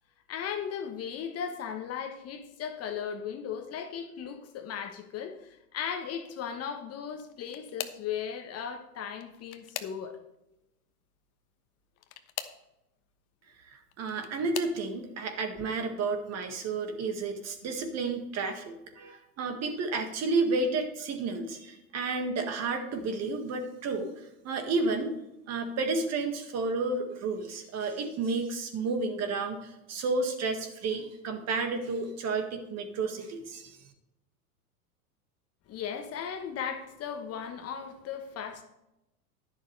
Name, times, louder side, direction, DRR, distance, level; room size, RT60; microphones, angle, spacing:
voice 1, 0.3-10.2 35.7-38.6, left 7 dB, 30° left, 6 dB, 1.2 m, -37 dB
sound 1, 7.1-8.1 9.1-10.4 12.0-12.7 13.7-14.8 15.6-15.9 16.3-16.5 17.8-17.9, left 12 dB, 60° left, 1.1 m, -41 dB
voice 2, 13.6-25.2 25.5-33.8, right 3 dB, 35° right, 6 dB, 1.8 m, -31 dB
11.0 x 11.0 x 3.3 m, 0.87 s
hypercardioid pair, 95°, 47 cm